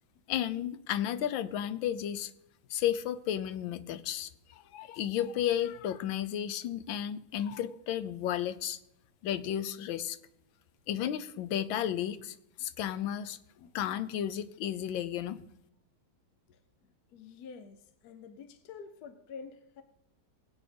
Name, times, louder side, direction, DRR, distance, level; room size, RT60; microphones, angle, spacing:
voice 1, 0.3-2.3 2.7-8.8 9.2-10.2 10.9-13.4 13.7-15.4, left 10 dB, 85° left, 1.4 m, -33 dB
voice 2, 13.6-14.0 16.5-16.6 17.1-19.8, left 5 dB, 65° left, 1.1 m, -48 dB
20.0 x 8.4 x 3.4 m
omnidirectional pair, 2.1 m